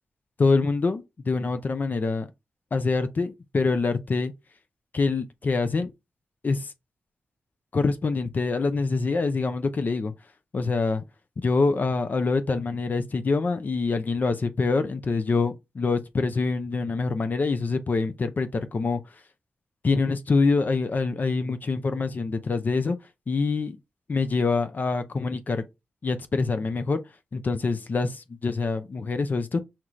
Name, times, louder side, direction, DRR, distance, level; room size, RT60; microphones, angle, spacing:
voice 1, 0.4-2.3 2.7-4.3 4.9-5.9 6.4-6.7 7.7-10.1 10.5-11.0 11.4-19.0 19.8-23.0 23.3-23.8 24.1-25.6 26.0-27.0 27.3-29.6, left 4 dB, 50° left, 0.5 m, -25 dB
5.8 x 2.4 x 3.1 m
cardioid pair, 55°, 4 cm